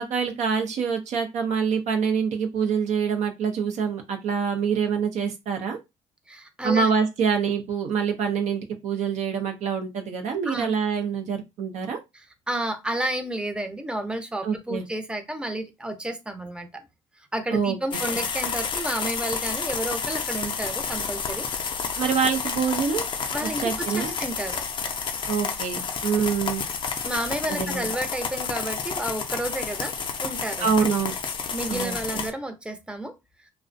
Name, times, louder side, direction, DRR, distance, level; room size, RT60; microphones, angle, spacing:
voice 1, 0.0-5.8 6.6-12.0 14.4-14.9 17.5-17.8 18.1-18.2 22.0-23.1 23.4-24.1 25.3-26.6 27.5-27.9 30.6-31.1 31.7-32.2, right 6 dB, 65° right, 4 dB, 0.5 m, -25 dB
voice 2, 6.3-6.9 10.5-10.8 12.1-16.9 17.3-21.5 23.3-24.6 27.0-29.9 30.2-30.7 31.5-33.1, right 1 dB, 5° right, 6 dB, 0.6 m, -31 dB
sound 1, 17.9-32.3, left 6 dB, 40° left, 0.4 m, -30 dB
2.4 x 2.0 x 2.5 m, 0.22 s
supercardioid pair, 85°, 13 cm